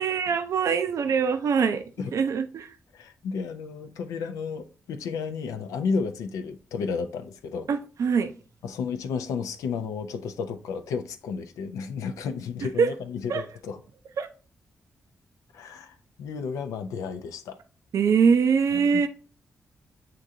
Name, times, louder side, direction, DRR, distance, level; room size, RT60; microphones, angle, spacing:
voice 1, 0.0-1.8 2.1-2.7 7.7-8.3 12.8-12.9 13.3-13.4 14.2-14.3 17.9-19.1, right 6 dB, 70° right, 0.5 m, -23 dB
voice 2, 2.9-7.7 8.6-13.8 15.5-17.6 18.7-19.0, left 5 dB, 90° left, 0.5 m, -32 dB
7.5 x 2.5 x 2.7 m
supercardioid pair, 50°, 6 cm